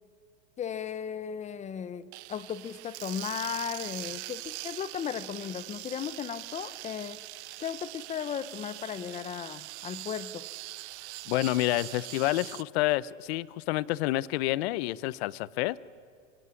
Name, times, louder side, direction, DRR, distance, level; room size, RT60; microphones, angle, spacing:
voice 1, 0.6-7.2 7.6-10.4, left 8 dB, 20° left, 16 dB, 0.7 m, -36 dB
sound 1, 2.1-12.6, right 19 dB, 60° right, 0.7 m, -42 dB
voice 2, 11.3-15.8, left 17 dB, 55° left, 20 dB, 0.9 m, -28 dB
26.0 x 23.0 x 9.8 m, 2.3 s
supercardioid pair, 140°, 38 cm